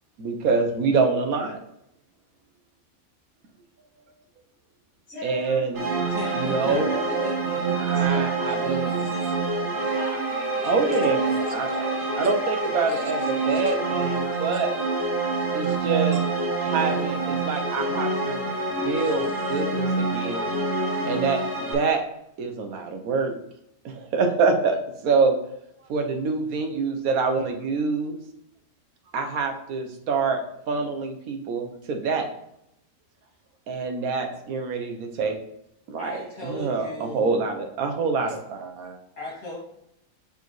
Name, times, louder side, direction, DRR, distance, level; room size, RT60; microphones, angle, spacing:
voice 1, 0.2-1.6 5.2-5.8 6.3-6.9 7.8-8.9 10.6-11.7 12.2-13.2 13.5-14.1 14.4-14.7 15.5-16.2 16.6-20.4 21.1-22.0 22.4-23.3 23.8-24.8 25.0-25.4 25.9-28.2 29.1-30.4 30.7-32.3 33.7-35.4 35.9-36.2 36.5-39.0, right 4 dB, 85° right, 4 dB, 1.3 m, -26 dB
voice 2, 5.1-5.7 6.6-12.2 12.6-13.5 13.9-14.0, equal, 50° left, -9 dB, 2.7 m, -40 dB
sound 1, 5.7-21.7, right 3 dB, 65° right, 1.6 m, -26 dB
voice 3, 6.1-7.7 36.0-37.3 39.2-39.6, left 1 dB, 90° left, -5 dB, 2.8 m, -36 dB
6.8 x 4.7 x 3.1 m, 0.78 s
omnidirectional pair, 1.5 m